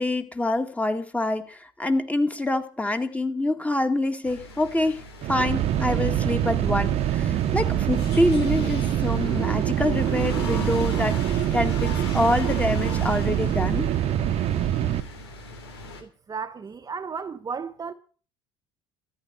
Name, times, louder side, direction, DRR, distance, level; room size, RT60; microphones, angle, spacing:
voice 1, 0.0-5.0 5.3-13.9, left 1 dB, 10° left, 2.1 m, -26 dB
sound 1, 4.2-16.0, left 3 dB, 90° left, 3.0 m, -40 dB
sound 2, 5.2-15.0, right 11 dB, 55° right, 1.1 m, -24 dB
voice 2, 16.0-17.9, right 5 dB, 30° right, 1.1 m, -34 dB
13.5 x 10.0 x 6.9 m
hypercardioid pair, 70°, 13 cm